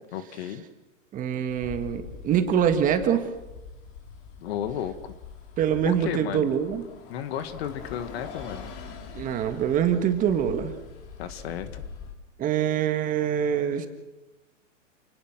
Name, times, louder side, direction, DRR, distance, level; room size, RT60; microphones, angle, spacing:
voice 1, 0.1-0.6 4.4-5.1 5.9-6.5 7.1-8.7 11.2-11.8, left 9 dB, 50° left, 11 dB, 2.0 m, -33 dB
voice 2, 1.1-3.3 5.6-6.8 9.1-10.7 12.4-13.9, right 9 dB, 20° right, 7 dB, 1.8 m, -24 dB
Bus, 1.5-12.1, left 5 dB, 35° left, 3.3 m, -43 dB
28.5 x 18.5 x 6.1 m, 1.0 s
hypercardioid pair, 150°, 38 cm